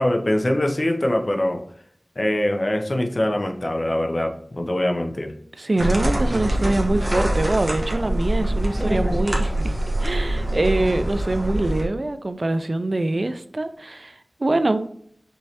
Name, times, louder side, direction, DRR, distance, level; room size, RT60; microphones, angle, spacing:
voice 1, 0.0-1.6 2.2-5.3, left 1 dB, 45° left, 4 dB, 0.7 m, -23 dB
voice 2, 5.6-9.8 10.0-14.9, right 2 dB, 50° right, 10 dB, 0.4 m, -24 dB
sound 1, 5.8-11.9, right 1 dB, 30° right, 1.1 m, -24 dB
5.3 x 3.2 x 2.8 m, 0.65 s
wide cardioid pair, 60°, 0 cm